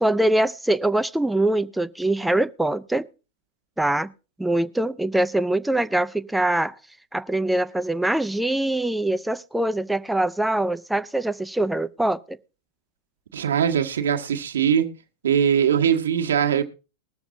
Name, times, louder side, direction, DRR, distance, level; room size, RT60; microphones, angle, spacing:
voice 1, 0.0-3.0 3.8-4.1 4.4-6.8 7.1-12.4, right 1 dB, 5° right, 0.5 m, -23 dB
voice 2, 13.3-14.9 15.2-16.6, right 8 dB, 65° right, 1.2 m, -21 dB
21.0 x 7.1 x 3.7 m
figure-of-eight pair, 90°, 0 cm